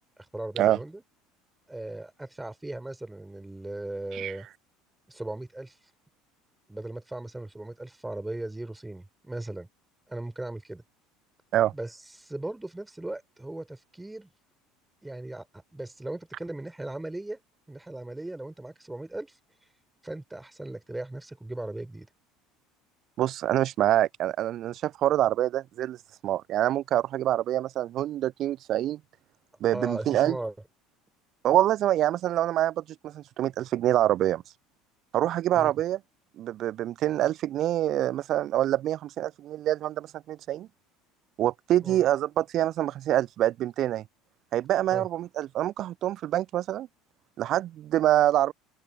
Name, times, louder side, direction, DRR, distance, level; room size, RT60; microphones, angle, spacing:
voice 1, 0.3-1.0 1.7-4.5 5.1-5.8 6.7-9.7 10.1-10.8 11.7-14.3 15.0-17.4 17.7-19.4 20.0-22.1 29.7-30.5 35.5-35.7 41.8-42.0 44.9-45.1, right 2 dB, 10° right, 5.4 m, -37 dB
voice 2, 23.2-26.0 26.2-29.0 29.6-30.4 31.4-34.4 35.1-36.0 36.4-40.7 41.4-44.0 44.5-46.9 47.4-48.5, right 13 dB, 45° right, 0.9 m, -26 dB
open air
figure-of-eight pair, 65°, 0 cm